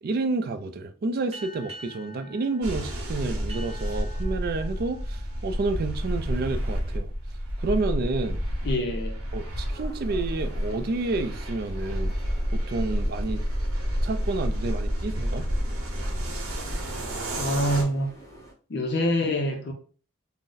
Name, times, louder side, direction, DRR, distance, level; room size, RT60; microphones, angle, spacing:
voice 1, 0.0-7.1 7.6-8.4 9.3-12.1 12.5-13.4 14.0-15.5, right 3 dB, 45° right, 0.3 m, -30 dB
sound 1, 1.3-6.4, right 1 dB, 30° right, 0.9 m, -46 dB
sound 2, 2.6-17.8, equal, 90° right, 0.8 m, -30 dB
voice 2, 8.6-9.2 17.4-18.1 18.7-19.7, equal, 55° left, 0.5 m, -26 dB
sound 3, 9.7-18.5, right 1 dB, 15° left, 0.8 m, -48 dB
2.6 x 2.0 x 3.7 m
head